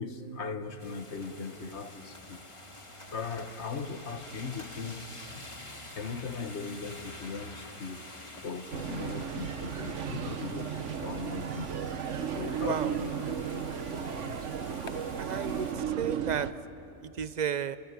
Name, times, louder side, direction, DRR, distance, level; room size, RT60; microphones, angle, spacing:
voice 1, 0.0-2.4 3.1-5.1 5.9-8.1 8.4-11.7 12.3-14.4, left 4 dB, 60° left, 1.6 m, -39 dB
sound 1, 0.8-15.7, left 1 dB, 25° left, 2.0 m, -48 dB
sound 2, 8.7-16.5, right 8 dB, 70° right, 1.3 m, -35 dB
voice 2, 12.6-12.9 15.2-16.5 17.0-17.8, right 8 dB, 40° right, 0.7 m, -33 dB
29.5 x 23.5 x 8.2 m
omnidirectional pair, 1.3 m